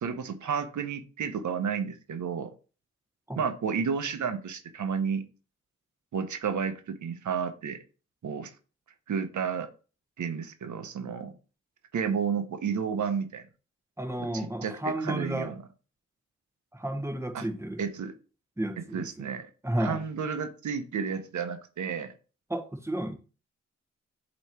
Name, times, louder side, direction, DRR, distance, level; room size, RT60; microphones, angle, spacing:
voice 1, 0.0-2.5 3.4-5.2 6.1-7.8 8.2-8.5 9.1-9.7 10.2-11.4 11.9-13.4 14.2-15.6 17.3-17.4 17.8-18.1 18.9-19.5 19.8-22.1, right 6 dB, 90° right, 0.8 m, -31 dB
voice 2, 14.0-15.5 16.7-17.8 18.6-19.3 19.6-20.0 22.5-23.2, right 1 dB, 10° right, 1.2 m, -32 dB
8.2 x 3.1 x 4.3 m
cardioid pair, 75°, 29 cm